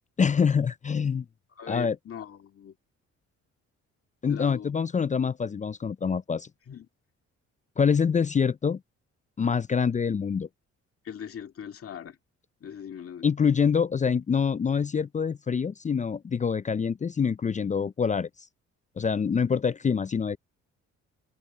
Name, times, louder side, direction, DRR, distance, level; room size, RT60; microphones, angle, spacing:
voice 1, 0.2-1.2 1.7-2.0 4.2-6.5 7.8-8.8 9.4-10.5 13.2-18.3 19.0-20.4, left 6 dB, 25° left, 0.4 m, -25 dB
voice 2, 1.6-2.8 4.3-4.7 6.7-6.9 11.0-12.2 12.6-13.3, left 8 dB, 50° left, 2.1 m, -40 dB
open air
cardioid pair, 90°, 30 cm